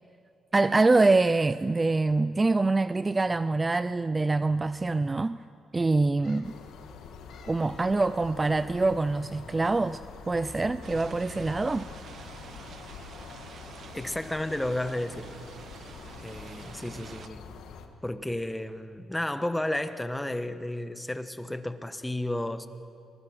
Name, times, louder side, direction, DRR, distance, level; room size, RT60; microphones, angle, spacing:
voice 1, 0.5-5.4 5.7-6.6 7.4-10.0 10.3-11.8, right 3 dB, 20° right, 14 dB, 0.5 m, -25 dB
sound 1, 2.8-3.4 4.2-4.3 4.6-4.7 6.2-6.6 7.3-8.1 8.4-8.5, left 6 dB, 65° left, 2.4 m, -57 dB
sound 2, 6.4-17.9, left 6 dB, 85° left, 1.8 m, -45 dB
sound 3, 10.8-17.3, right 7 dB, 55° right, 0.8 m, -48 dB
voice 2, 13.9-15.3 16.1-17.4 18.0-22.7, left 1 dB, 10° left, 10 dB, 1.3 m, -32 dB
26.0 x 21.0 x 6.5 m, 2.7 s
cardioid pair, 90°, 0 cm